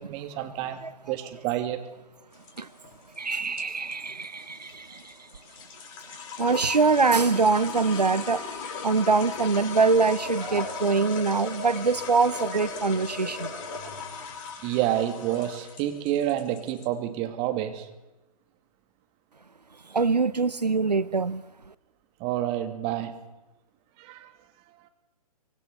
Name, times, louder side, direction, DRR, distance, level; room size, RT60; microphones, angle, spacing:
voice 1, 0.0-1.8 14.6-17.9 22.2-23.2 24.0-24.3, right 12 dB, 30° right, 7 dB, 2.8 m, -29 dB
sound 1, 2.3-16.9, left 5 dB, 35° left, 5.4 m, -38 dB
voice 2, 3.2-5.3 6.4-8.5 8.8-13.8 19.9-21.4, right 4 dB, 90° right, 17 dB, 0.9 m, -24 dB
24.5 x 24.5 x 7.1 m, 1.0 s
figure-of-eight pair, 125°, 20 cm